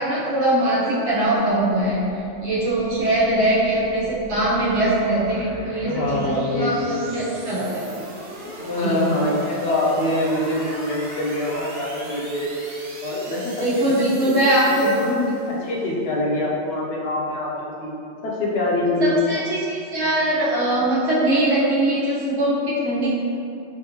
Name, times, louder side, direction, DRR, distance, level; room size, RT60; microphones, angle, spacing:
voice 1, 0.0-2.0 2.4-7.8 8.8-9.2 13.6-15.2 19.0-23.1, right 1 dB, 80° right, -9 dB, 1.1 m, -21 dB
sound 1, 1.3-15.8, right 1 dB, 60° right, 0.7 m, -39 dB
voice 2, 5.9-7.1 7.9-8.0 8.4-12.5 13.0-13.8 14.1-14.3 15.5-17.9 18.2-19.2, left 1 dB, 70° left, -4 dB, 0.8 m, -24 dB
3.5 x 2.6 x 2.8 m, 2.6 s
omnidirectional pair, 1.1 m